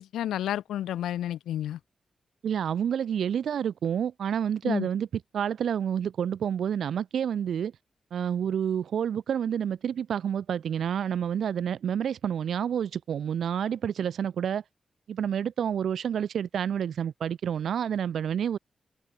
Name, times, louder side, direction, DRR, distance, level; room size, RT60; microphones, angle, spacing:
voice 1, 0.0-1.8 4.6-4.9, left 12 dB, 85° left, 7.9 m, -31 dB
voice 2, 2.4-5.1 5.3-7.7 8.1-14.6 15.1-18.6, right 8 dB, 75° right, 3.7 m, -29 dB
open air
supercardioid pair, 40°, 0 cm